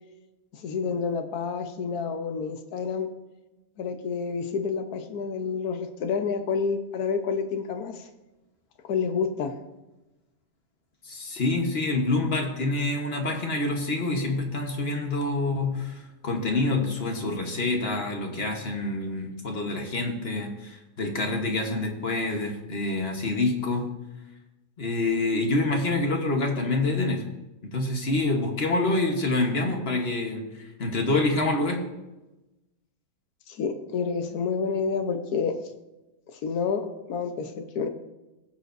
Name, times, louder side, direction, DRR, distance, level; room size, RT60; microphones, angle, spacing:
voice 1, 0.5-3.1 3.8-8.1 8.8-9.6 33.5-35.6 36.3-37.9, left 5 dB, 70° left, 7 dB, 1.4 m, -29 dB
voice 2, 11.0-23.9 24.8-27.3 27.7-31.9, left 2 dB, 40° left, 3 dB, 1.3 m, -27 dB
18.5 x 7.2 x 2.6 m, 1.0 s
omnidirectional pair, 1.7 m